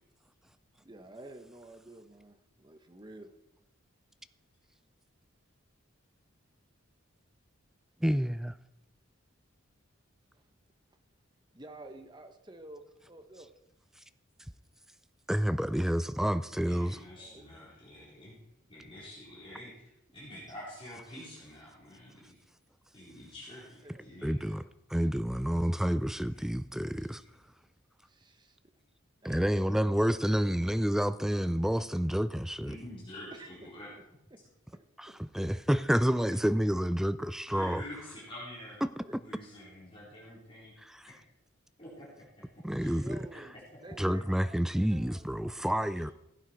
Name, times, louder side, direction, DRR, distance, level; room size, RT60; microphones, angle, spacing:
voice 1, 0.8-3.3 10.3-10.4 11.5-13.5 17.2-17.7 23.5-24.6 28.0-28.6 29.2-29.5 33.3-33.5 34.3-34.4 34.7-35.2 39.0-39.2 42.9-45.3, right 1 dB, 20° right, 1.0 m, -50 dB
voice 2, 8.0-8.5 15.3-17.0 24.2-24.6 24.9-27.2 29.2-32.8 35.2-37.8 40.8-41.1 42.6-43.2 44.0-46.1, equal, ahead, 0.3 m, -29 dB
voice 3, 16.6-18.3 18.7-19.7 20.1-22.4 22.9-24.6 26.3-26.6 32.7-33.9 37.5-38.8 39.2-40.7 41.0-41.1 41.8-42.1 42.4-43.0, left 1 dB, 25° left, 4.2 m, -47 dB
15.5 x 9.1 x 4.6 m
head